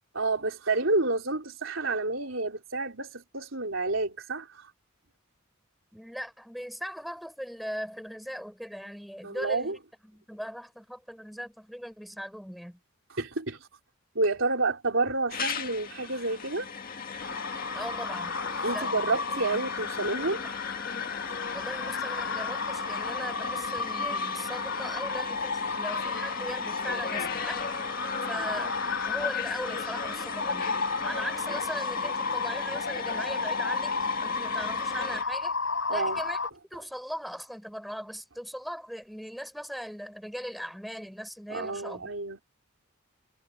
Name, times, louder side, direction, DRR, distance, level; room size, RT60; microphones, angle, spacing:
voice 1, 0.1-4.5 9.2-9.8 13.2-13.6 14.1-16.7 18.6-20.4 35.9-36.2 41.5-42.4, right 3 dB, 65° right, 4.0 m, -29 dB
voice 2, 5.9-12.8 17.7-18.4 18.7-19.8 20.2-20.6 21.5-27.7 28.3-28.8 29.0-30.8 31.0-35.6 35.9-36.4 36.7-42.1, equal, ahead, 7.5 m, -39 dB
sound 1, 15.3-35.2, left 5 dB, 45° left, 2.1 m, -37 dB
sound 2, 17.2-36.5, left 4 dB, 70° left, 4.9 m, -33 dB
head